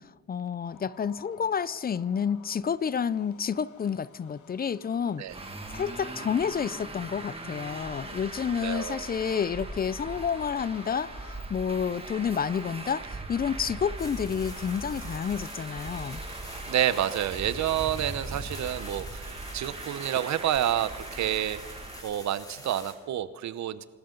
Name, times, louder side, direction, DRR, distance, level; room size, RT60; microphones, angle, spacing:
voice 1, 0.0-5.2 5.7-16.2, left 7 dB, 30° left, 0.5 m, -30 dB
sound 1, 0.6-11.4, left 6 dB, 75° left, 2.1 m, -54 dB
Traffic noise roadway noise, 5.3-22.0, right 2 dB, 20° right, 2.2 m, -40 dB
voice 2, 8.6-9.1 16.7-21.6 22.0-23.9, right 11 dB, 65° right, 0.9 m, -29 dB
sound 2, 14.0-22.9, left 1 dB, 10° left, 3.2 m, -47 dB
26.0 x 13.0 x 3.9 m
cardioid pair, 90°, 30 cm